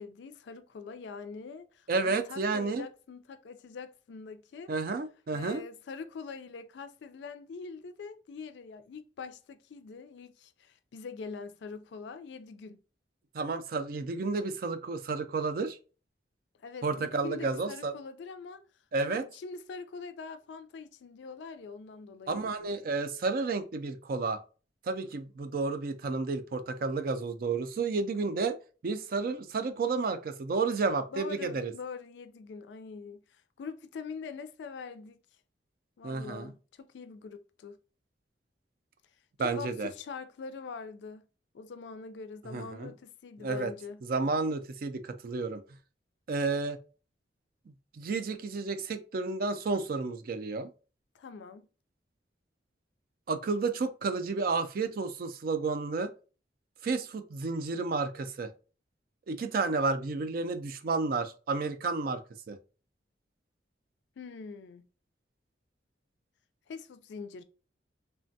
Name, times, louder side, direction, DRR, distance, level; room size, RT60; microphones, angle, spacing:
voice 1, 0.0-4.7 5.3-12.8 16.6-18.6 19.0-22.7 31.1-35.2 36.0-37.8 39.4-41.3 41.5-44.0 51.1-51.7 64.2-64.8 66.7-67.4, left 5 dB, 70° left, 0.3 m, -44 dB
voice 2, 1.9-2.9 4.7-5.6 13.3-15.8 16.8-17.9 18.9-19.2 22.3-24.4 24.8-28.5 28.8-31.7 36.0-36.5 39.4-39.9 42.4-42.9 43.4-43.7 44.0-45.6 46.3-46.8 47.9-50.7 53.3-56.1 56.8-58.5 59.3-62.2 62.5-62.6, right 4 dB, 50° right, 0.3 m, -31 dB
3.2 x 2.2 x 2.6 m
head